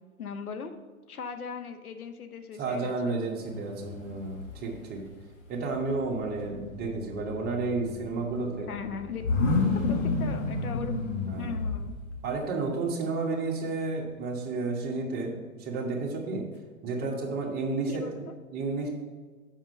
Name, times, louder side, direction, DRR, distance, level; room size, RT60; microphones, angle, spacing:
voice 1, 0.2-0.7 1.1-3.2 8.7-9.2 9.9-11.0 11.4-11.9 17.9-18.3, left 6 dB, 80° left, 7 dB, 0.9 m, -39 dB
voice 2, 2.6-5.0 5.5-8.7 11.3-11.5 12.2-16.4 16.8-18.2 18.5-18.9, right 3 dB, 20° right, 0 dB, 1.3 m, -31 dB
sound 1, 3.5-4.9 5.2-12.3, left 3 dB, 55° left, 1.7 m, -31 dB
7.4 x 5.4 x 5.5 m, 1.4 s
figure-of-eight pair, 115°, 43 cm